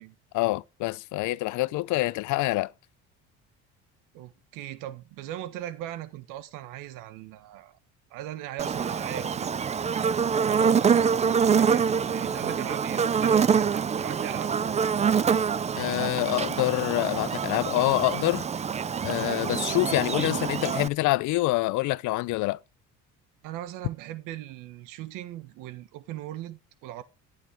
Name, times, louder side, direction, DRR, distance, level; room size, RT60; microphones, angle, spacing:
voice 1, 0.3-2.7 15.8-18.4 19.0-22.6, left 19 dB, 65° left, 0.6 m, -26 dB
voice 2, 4.1-7.8 8.1-9.5 10.4-14.5 23.4-27.0, right 13 dB, 80° right, 1.5 m, -39 dB
Buzz, 8.6-20.9, right 6 dB, 20° right, 0.5 m, -25 dB
11.5 x 9.7 x 3.5 m
cardioid pair, 105°, 32 cm